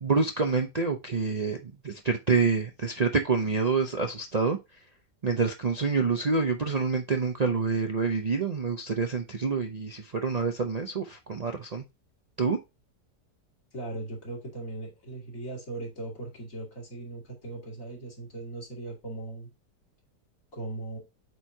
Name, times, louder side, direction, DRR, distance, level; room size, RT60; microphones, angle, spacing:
voice 1, 0.0-4.6 5.2-11.8 12.4-12.6, right 4 dB, 85° right, 0.3 m, -27 dB
voice 2, 13.7-19.5 20.5-21.0, right 2 dB, 50° left, 2.9 m, -38 dB
8.1 x 4.6 x 2.7 m
omnidirectional pair, 1.8 m